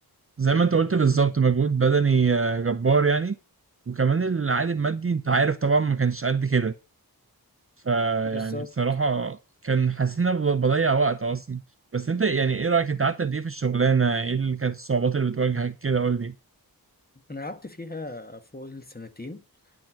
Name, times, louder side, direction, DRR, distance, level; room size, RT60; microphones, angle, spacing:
voice 1, 0.4-3.4 3.9-6.7 7.9-9.4 9.6-11.6 11.9-16.3, right 5 dB, 35° right, 0.6 m, -23 dB
voice 2, 8.2-8.8 17.3-19.4, left 2 dB, 25° left, 1.5 m, -38 dB
10.0 x 6.1 x 6.3 m
wide cardioid pair, 65°, 38 cm